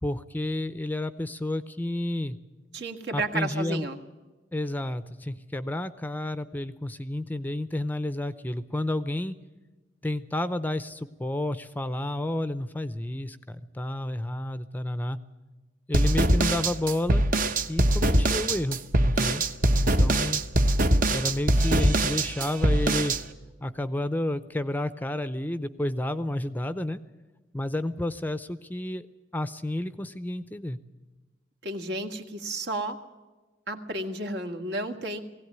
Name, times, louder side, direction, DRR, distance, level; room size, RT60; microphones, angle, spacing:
voice 1, 0.0-2.4 3.1-3.8 4.5-9.4 10.0-15.2 15.9-17.2 17.7-19.4 19.8-20.4 21.1-23.2 23.6-27.0 27.5-29.1 29.3-30.8, left 1 dB, 10° left, 12 dB, 0.6 m, -30 dB
voice 2, 2.7-4.0 31.6-33.0 33.7-35.2, right 2 dB, 70° right, 4 dB, 2.0 m, -32 dB
sound 1, 15.9-23.2, right 1 dB, 50° right, 1.0 m, -22 dB
20.0 x 16.5 x 9.4 m, 1.2 s
head